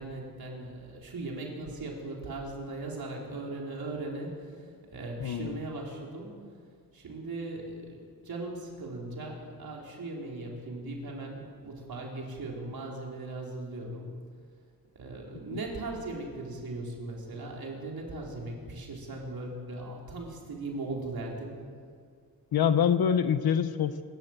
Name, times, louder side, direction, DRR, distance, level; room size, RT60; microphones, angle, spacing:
voice 1, 0.0-4.5 4.9-6.3 6.9-8.0 8.2-14.1 14.9-21.5, right 2 dB, 65° right, -1 dB, 4.4 m, -38 dB
voice 2, 5.2-5.6 15.5-15.6 22.5-24.0, left 8 dB, 70° left, 11 dB, 0.9 m, -25 dB
26.0 x 13.5 x 8.0 m, 2.1 s
wide cardioid pair, 125°, 39 cm